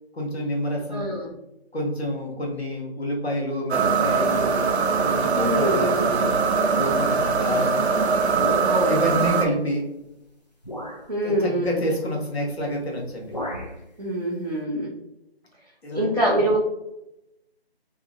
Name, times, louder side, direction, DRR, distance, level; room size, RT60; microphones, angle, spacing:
voice 1, 0.1-1.1 1.7-4.6 5.0-6.4 6.8-7.8 8.9-9.9 11.2-13.4 15.8-16.1, equal, 75° left, -1 dB, 1.1 m, -28 dB
voice 2, 0.9-1.3 5.3-6.2 8.6-9.0 11.1-11.7 14.0-14.9 15.9-16.6, right 1 dB, 40° right, -6 dB, 0.6 m, -24 dB
sound 1, 3.7-9.5, right 5 dB, 85° right, 0.5 m, -22 dB
sound 2, 8.3-9.1 10.0-10.1 10.6-11.1 12.5-12.7 13.0-13.8, equal, 45° left, 0.5 m, -34 dB
2.8 x 2.4 x 2.4 m, 0.86 s
figure-of-eight pair, 180°, 32 cm